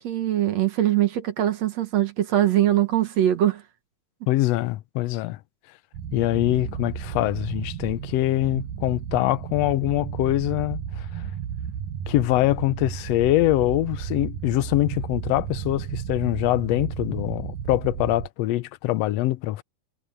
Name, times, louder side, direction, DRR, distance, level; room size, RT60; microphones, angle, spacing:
voice 1, 0.0-3.6, right 12 dB, 65° right, 2.5 m, -22 dB
voice 2, 4.3-5.4 6.1-11.1 12.1-19.6, left 16 dB, 75° left, 1.6 m, -24 dB
sound 1, 5.9-18.3, right 8 dB, 85° right, 2.7 m, -33 dB
omnidirectional pair, 3.5 m